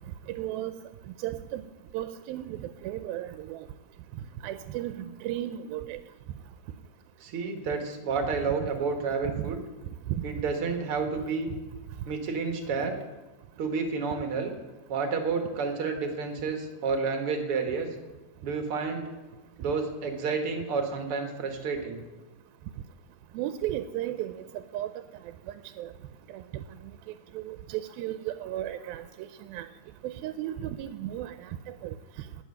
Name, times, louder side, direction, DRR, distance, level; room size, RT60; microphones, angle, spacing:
voice 1, 0.3-0.7 1.2-1.6 1.9-3.6 4.4-6.0 8.6-8.7 9.3-9.5 10.1-10.3 23.3-24.3 24.7-24.9 25.5-25.9 26.3-26.6 27.3-29.7 30.0-31.9, right 13 dB, 85° right, 10 dB, 2.4 m, -34 dB
voice 2, 7.2-9.6 10.2-11.5 12.0-12.9 13.6-14.5 14.9-17.9 18.4-19.1 19.6-22.0, right 4 dB, 55° right, 4 dB, 1.7 m, -30 dB
12.0 x 7.8 x 9.5 m, 1.2 s
omnidirectional pair, 4.2 m